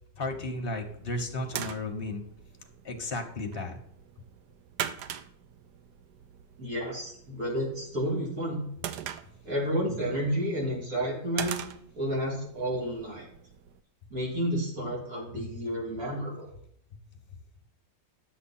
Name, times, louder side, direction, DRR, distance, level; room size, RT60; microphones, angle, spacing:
voice 1, 0.2-2.2 2.8-3.8 15.3-15.4, left 2 dB, 35° left, 4 dB, 1.2 m, -34 dB
sound 1, 0.7-13.8, right 10 dB, 75° right, 1.2 m, -42 dB
voice 2, 6.6-8.6 9.4-11.5 11.9-13.3 14.1-16.5, equal, 50° right, -4 dB, 3.3 m, -31 dB
11.0 x 7.1 x 4.3 m, 0.66 s
omnidirectional pair, 2.0 m